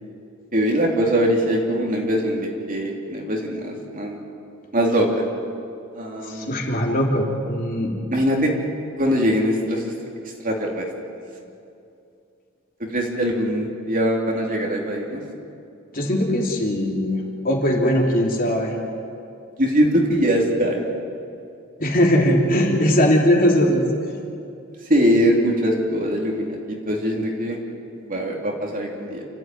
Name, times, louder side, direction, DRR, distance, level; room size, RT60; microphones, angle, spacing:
voice 1, 0.5-4.2 4.7-5.2 5.9-6.5 8.1-8.5 9.0-9.9 10.4-10.9 12.8-15.2 19.6-20.9 24.9-27.6 28.0-29.2, equal, 40° right, 0 dB, 3.3 m, -22 dB
voice 2, 6.3-7.9 15.9-17.2 17.4-18.7 21.8-23.8, equal, 45° left, -1 dB, 3.2 m, -20 dB
28.0 x 14.5 x 9.3 m, 2.6 s
head